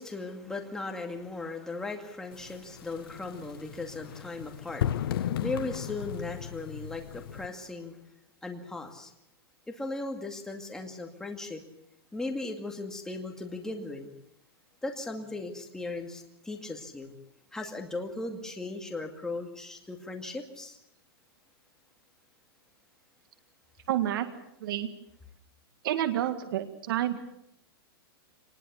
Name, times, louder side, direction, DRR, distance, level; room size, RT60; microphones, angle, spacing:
voice 1, 0.0-8.0 8.4-9.1 9.7-11.6 12.1-14.1 14.8-17.1 17.5-20.8, left 2 dB, 5° left, 3 dB, 2.3 m, -37 dB
sound 1, 2.3-7.5, left 10 dB, 65° left, 1.1 m, -35 dB
voice 2, 23.9-24.3 24.6-24.9 25.8-27.2, right 12 dB, 60° right, 8 dB, 1.9 m, -29 dB
24.5 x 20.0 x 7.1 m, 0.77 s
supercardioid pair, 160°, 13 cm